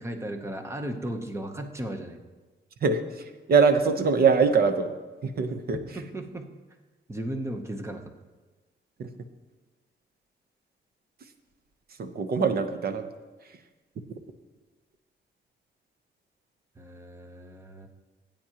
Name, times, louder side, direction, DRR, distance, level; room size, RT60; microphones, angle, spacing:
voice 1, 0.0-2.2 5.7-6.5 7.1-8.0 16.8-17.9, right 1 dB, 15° right, 5 dB, 0.8 m, -35 dB
voice 2, 2.8-4.9 5.2-5.8 9.0-9.1 12.0-13.1 14.1-14.2, right 5 dB, 50° right, 8 dB, 0.9 m, -23 dB
18.5 x 9.0 x 2.9 m, 1.3 s
wide cardioid pair, 170°, 20 cm